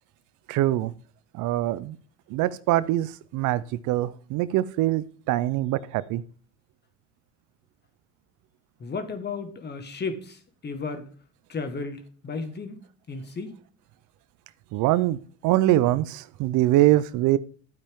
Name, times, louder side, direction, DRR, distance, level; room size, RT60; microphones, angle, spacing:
voice 1, 0.5-0.9 1.3-2.0 2.3-6.2 14.7-15.2 15.4-17.4, right 15 dB, 70° right, 0.6 m, -23 dB
voice 2, 8.8-11.1 11.5-13.6, left 4 dB, 35° left, 1.7 m, -34 dB
12.0 x 8.8 x 3.7 m
supercardioid pair, 100°, 32 cm